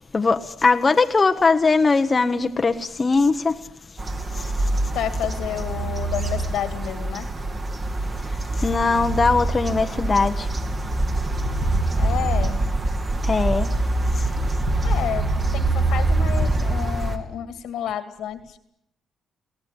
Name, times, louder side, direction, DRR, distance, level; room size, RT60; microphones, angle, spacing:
voice 1, 0.1-3.7 4.3-4.7 8.2-10.5 13.2-13.7 14.1-14.3, left 4 dB, 30° left, 1.2 m, -21 dB
sound 1, 4.0-17.2, right 2 dB, 35° right, 3.0 m, -24 dB
voice 2, 4.9-7.3 11.9-12.6 14.8-18.6, left 10 dB, 80° left, 2.3 m, -30 dB
23.0 x 17.0 x 9.9 m
cardioid pair, 90°, 0 cm